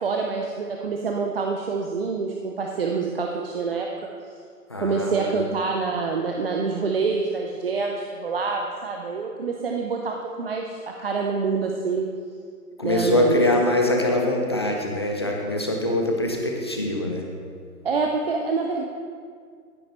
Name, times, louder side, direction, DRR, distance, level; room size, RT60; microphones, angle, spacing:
voice 1, 0.0-4.1 4.8-12.1 12.8-13.4 17.8-18.8, right 4 dB, 40° right, 1 dB, 0.7 m, -26 dB
voice 2, 4.7-5.4 12.8-17.3, left 2 dB, 20° left, 1 dB, 0.5 m, -23 dB
15.0 x 9.9 x 3.1 m, 2.1 s
figure-of-eight pair, 140°, 46 cm